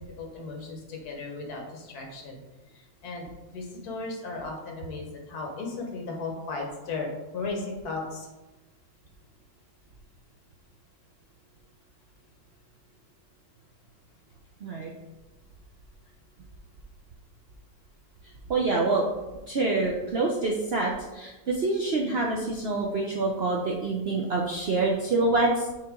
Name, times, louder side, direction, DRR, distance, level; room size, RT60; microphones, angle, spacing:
voice 1, 0.0-3.3 3.5-8.3, left 3 dB, 60° left, 1 dB, 1.6 m, -36 dB
voice 2, 14.6-14.9 18.5-19.1 19.5-25.8, right 3 dB, 90° right, -1 dB, 0.5 m, -26 dB
6.6 x 4.0 x 3.6 m, 1.1 s
omnidirectional pair, 1.9 m